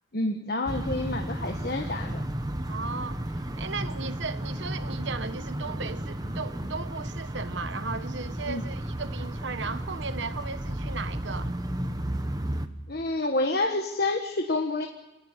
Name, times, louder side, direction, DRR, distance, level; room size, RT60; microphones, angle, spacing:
voice 1, 0.1-2.2 8.5-8.6 12.9-14.9, left 2 dB, 50° left, 1.5 m, -28 dB
sound 1, 0.7-12.7, right 1 dB, 20° right, 1.1 m, -33 dB
voice 2, 2.7-11.5, right 4 dB, 65° right, 1.2 m, -36 dB
26.5 x 17.5 x 9.7 m
head